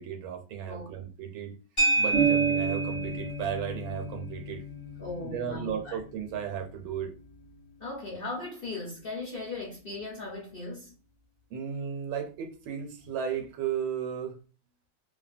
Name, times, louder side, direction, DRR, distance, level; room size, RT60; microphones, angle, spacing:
voice 1, 0.0-1.5 2.0-4.6 5.2-7.1 11.5-14.4, right 8 dB, 80° right, 1.4 m, -34 dB
sound 1, 1.8-10.2, right 2 dB, 20° left, 0.9 m, -34 dB
sound 2, 2.1-5.9, right 6 dB, 50° right, 1.0 m, -31 dB
voice 2, 5.0-6.0 7.8-10.9, left 2 dB, 60° left, 0.5 m, -38 dB
2.7 x 2.7 x 2.4 m
omnidirectional pair, 2.2 m